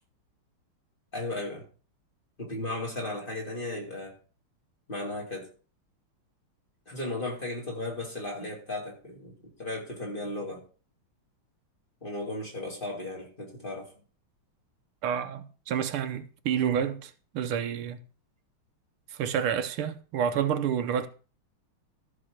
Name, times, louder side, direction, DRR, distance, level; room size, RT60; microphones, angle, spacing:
voice 1, 1.1-1.6 2.4-4.2 4.9-5.5 6.9-10.6 12.0-13.9, left 2 dB, 25° left, 3.2 m, -35 dB
voice 2, 15.0-18.0 19.1-21.1, right 8 dB, 85° right, 1.8 m, -29 dB
14.0 x 4.9 x 6.5 m
omnidirectional pair, 2.4 m